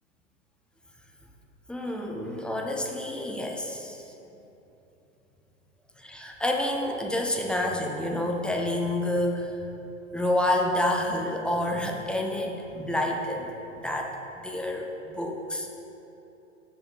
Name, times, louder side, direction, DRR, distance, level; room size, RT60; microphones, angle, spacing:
voice 1, 1.7-4.0 6.0-9.5 10.1-13.5 13.8-14.1 14.4-15.7, left 1 dB, ahead, 1 dB, 0.4 m, -28 dB
6.9 x 6.0 x 5.2 m, 3.0 s
hypercardioid pair, 100°, 40 cm